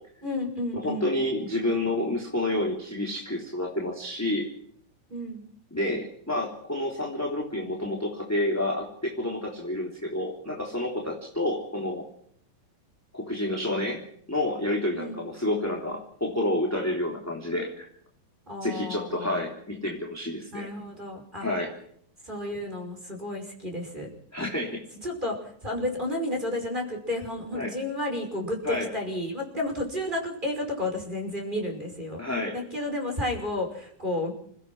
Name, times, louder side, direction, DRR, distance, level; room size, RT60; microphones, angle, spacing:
voice 1, 0.2-1.1 5.1-5.5 14.9-15.2 18.5-19.5 20.5-21.5 22.2-24.1 25.0-32.2 32.5-34.3, left 1 dB, 15° right, 2 dB, 5.3 m, -32 dB
voice 2, 0.7-4.5 5.7-12.0 13.1-14.0 14.3-17.9 18.6-20.7 21.4-21.7 24.3-24.8 27.5-27.7 28.6-28.9 32.2-32.6, left 1 dB, 5° left, -1 dB, 2.9 m, -29 dB
28.0 x 16.5 x 6.2 m, 0.66 s
omnidirectional pair, 3.9 m